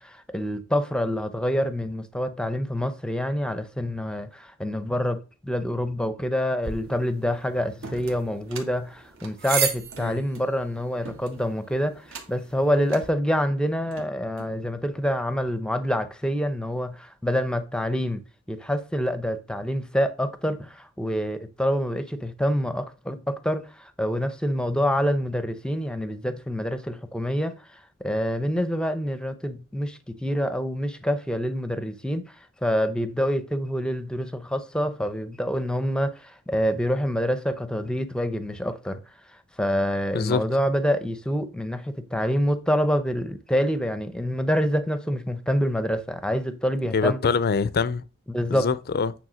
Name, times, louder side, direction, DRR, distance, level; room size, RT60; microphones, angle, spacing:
voice 1, 0.0-18.2 18.5-32.2 32.6-39.0 39.6-47.2 48.3-48.7, equal, 5° left, 0.7 m, -26 dB
sound 1, 6.6-13.1, right 6 dB, 45° right, 1.3 m, -35 dB
sound 2, 7.8-8.7 9.1-10.5 11.0-11.6 12.0-12.4 12.9-13.1 13.7-14.6, right 4 dB, 65° right, 1.7 m, -43 dB
voice 2, 46.9-48.0 48.5-49.1, left 5 dB, 45° left, 0.5 m, -24 dB
9.2 x 3.4 x 6.2 m
head